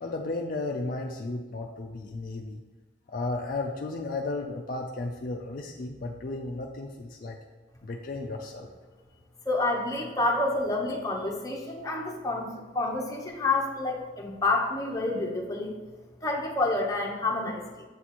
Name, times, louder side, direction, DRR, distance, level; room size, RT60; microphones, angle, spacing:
voice 1, 0.0-2.6 3.1-7.4 7.8-8.7, left 2 dB, 50° left, 1 dB, 0.4 m, -34 dB
voice 2, 9.5-15.7 16.2-17.8, left 2 dB, 20° left, -1 dB, 0.8 m, -28 dB
7.7 x 3.0 x 4.1 m, 1.3 s
head